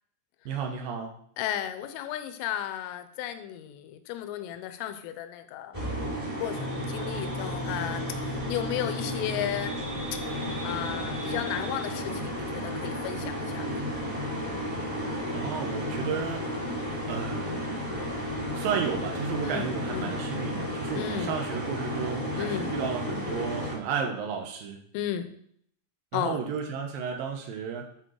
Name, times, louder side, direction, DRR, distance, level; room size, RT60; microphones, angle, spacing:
voice 1, 0.5-1.1 14.8-16.5 17.1-17.7 18.5-24.8 26.1-27.9, right 6 dB, 85° right, 2 dB, 2.0 m, -33 dB
voice 2, 1.4-5.8 6.4-9.8 10.6-13.8 19.4-20.2 20.9-21.3 22.4-22.7 24.9-25.3 26.1-26.4, left 11 dB, 85° left, 9 dB, 3.2 m, -34 dB
aire acondicionado encendido, 5.7-23.7, equal, 15° right, 1.2 m, -33 dB
sound 1, 6.6-12.0, equal, 65° right, 4.1 m, -39 dB
10.5 x 4.5 x 6.3 m, 0.64 s
omnidirectional pair, 5.8 m